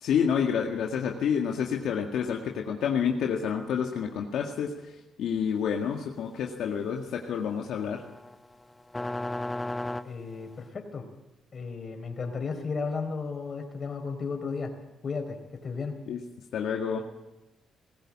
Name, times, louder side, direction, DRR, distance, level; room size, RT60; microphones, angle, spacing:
voice 1, 0.0-4.7 5.2-8.0 16.1-16.2 16.5-17.0, left 7 dB, 75° left, 2 dB, 1.9 m, -28 dB
sound 1, 7.8-10.6, left 1 dB, 15° left, 1.0 m, -34 dB
voice 2, 10.0-11.1 11.5-14.7 15.0-15.9, left 4 dB, 40° left, 5 dB, 4.5 m, -34 dB
20.0 x 15.5 x 8.7 m, 0.96 s
cardioid pair, 90°, 0 cm